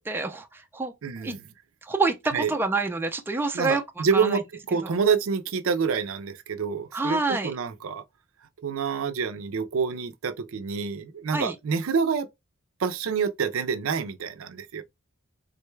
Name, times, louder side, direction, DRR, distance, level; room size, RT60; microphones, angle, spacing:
voice 1, 0.0-0.9 1.2-1.3 1.8-3.8 4.1-4.4 4.8-4.9 6.9-7.5 11.3-11.5, right 3 dB, 10° right, 0.4 m, -27 dB
voice 2, 1.0-1.4 2.3-2.5 3.5-8.0 8.6-12.3 12.8-14.8, right 6 dB, 70° right, 0.4 m, -27 dB
3.8 x 2.2 x 3.1 m
head